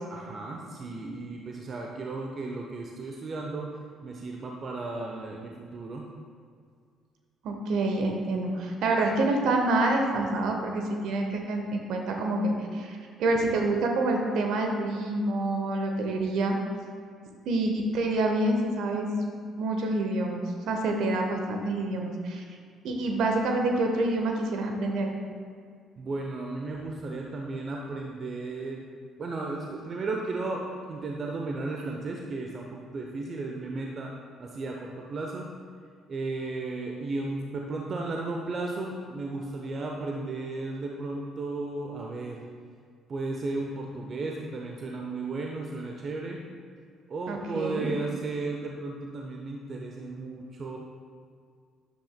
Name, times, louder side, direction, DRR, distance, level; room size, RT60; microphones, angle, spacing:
voice 1, 0.1-3.7 4.0-6.1 26.0-28.8 29.2-34.1 34.4-35.5 36.1-42.4 43.1-46.4 47.1-50.8, right 3 dB, 40° right, 0 dB, 0.9 m, -34 dB
voice 2, 7.4-16.6 17.4-19.1 19.5-22.4 22.8-25.1 47.3-47.9, right 2 dB, 60° right, 2 dB, 1.2 m, -27 dB
13.0 x 10.5 x 2.2 m, 2.1 s
figure-of-eight pair, 45°, 0 cm